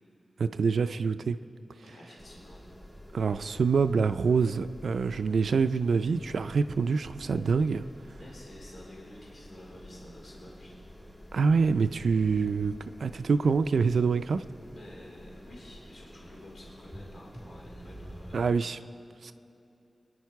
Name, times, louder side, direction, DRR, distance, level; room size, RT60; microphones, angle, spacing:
voice 1, 0.4-1.4 3.1-7.8 11.3-12.7 13.0-14.4 18.3-18.8 19.2-19.3, right 5 dB, 90° right, 10 dB, 0.3 m, -26 dB
voice 2, 1.8-2.6 7.7-7.8 8.2-10.7 14.7-18.7, left 1 dB, 80° left, -4 dB, 3.1 m, -50 dB
sound 1, 2.2-18.5, equal, 10° left, 2.7 m, -49 dB
23.5 x 9.8 x 4.7 m, 2.8 s
wide cardioid pair, 70°, 0 cm